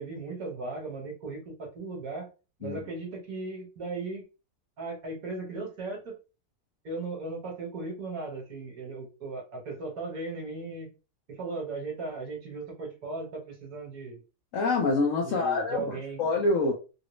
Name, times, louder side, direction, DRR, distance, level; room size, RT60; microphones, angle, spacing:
voice 1, 0.0-2.3 2.6-4.2 4.8-6.2 6.8-10.9 11.3-14.2 15.2-16.2, right 3 dB, 55° right, -1 dB, 1.5 m, -37 dB
voice 2, 14.5-16.7, left 3 dB, 65° left, 1 dB, 0.8 m, -26 dB
3.8 x 2.0 x 3.0 m, 0.32 s
omnidirectional pair, 1.9 m